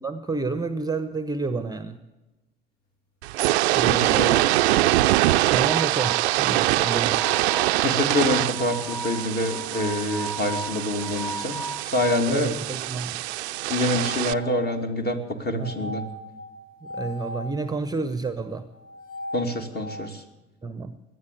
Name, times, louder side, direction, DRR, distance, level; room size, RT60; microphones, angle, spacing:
voice 1, 0.0-2.0 3.7-4.3 5.5-7.2 12.3-13.2 15.6-15.9 16.8-18.7 20.6-20.9, right 3 dB, 10° right, 10 dB, 1.0 m, -30 dB
sound 1, 3.2-14.3, right 17 dB, 75° right, 0.5 m, -24 dB
voice 2, 3.8-4.4 7.8-12.6 13.7-16.0 19.3-20.2, left 1 dB, 30° left, 4 dB, 2.7 m, -26 dB
sound 2, 4.2-12.3 13.6-14.8 15.6-17.6 18.8-20.1, equal, 55° left, 3.9 m, -38 dB
18.0 x 11.5 x 6.9 m, 1.0 s
figure-of-eight pair, 60°, 33 cm